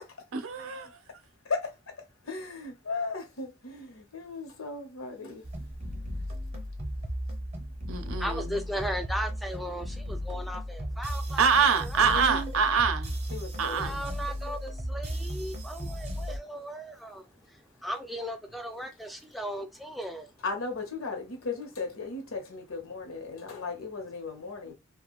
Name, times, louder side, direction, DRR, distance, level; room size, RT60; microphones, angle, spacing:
voice 1, 0.3-0.9 7.9-8.6 11.4-13.2 13.6-14.0, right 6 dB, 80° right, 0.5 m, -25 dB
voice 2, 2.2-5.4 12.0-12.5 13.3-13.9 20.4-24.7, left 3 dB, 90° left, 0.8 m, -36 dB
sound 1, 5.4-16.4, equal, 30° right, 0.6 m, -35 dB
voice 3, 7.9-12.3 13.8-20.3, equal, ahead, 0.3 m, -37 dB
2.4 x 2.2 x 2.9 m
head